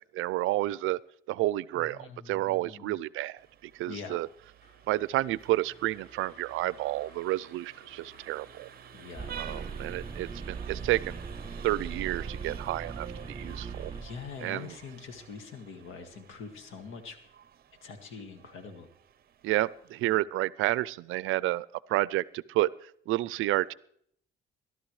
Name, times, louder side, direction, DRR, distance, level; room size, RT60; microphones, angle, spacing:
voice 1, 0.1-1.0 1.3-4.3 4.9-8.7 9.3-11.2 11.6-13.9 14.4-14.8 19.4-23.7, right 17 dB, 85° right, 20 dB, 0.4 m, -30 dB
voice 2, 1.7-3.0 3.9-4.2 8.9-9.7 12.5-12.8 14.0-17.2 17.8-18.9 20.1-20.2, left 5 dB, 80° left, 6 dB, 1.9 m, -44 dB
Vehicle horn car horn honking, 3.4-20.2, right 9 dB, 50° right, 0.7 m, -51 dB
sound 1, 4.6-12.8, equal, 35° left, 7.7 m, -59 dB
sound 2, 9.2-14.3, right 5 dB, 25° right, 2.6 m, -39 dB
22.0 x 12.0 x 3.2 m, 0.66 s
cardioid pair, 90°, 20 cm